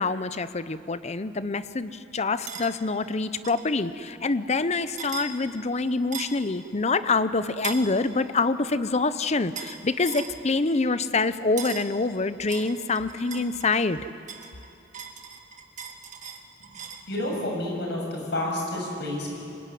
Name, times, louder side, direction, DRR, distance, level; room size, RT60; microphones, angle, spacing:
voice 1, 0.0-14.1, left 3 dB, 35° left, 13 dB, 0.8 m, -26 dB
sound 1, 2.5-2.7 3.4-3.7 5.0-5.3 6.1-6.4 7.6-7.9 9.6-9.8 10.1-10.4 11.6-11.9 12.5-13.9 14.3-17.1, right 7 dB, 45° right, 1.8 m, -38 dB
voice 2, 17.1-19.4, left 1 dB, 65° left, 0 dB, 7.3 m, -29 dB
25.5 x 21.5 x 9.4 m, 2.8 s
head